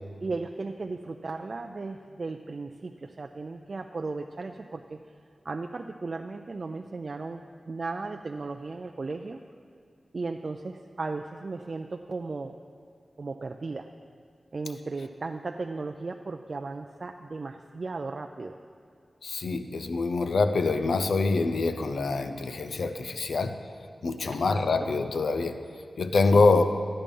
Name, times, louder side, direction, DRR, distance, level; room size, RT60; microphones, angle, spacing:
voice 1, 0.2-5.0 5.4-9.4 10.1-12.5 13.2-13.9 14.5-18.6 24.3-24.9 26.3-26.4, right 3 dB, 55° right, 4 dB, 0.4 m, -36 dB
voice 2, 19.2-23.6 24.0-25.6 26.0-26.7, left 3 dB, 85° left, 8 dB, 0.6 m, -25 dB
12.5 x 8.8 x 5.3 m, 2.4 s
wide cardioid pair, 80°, 0 cm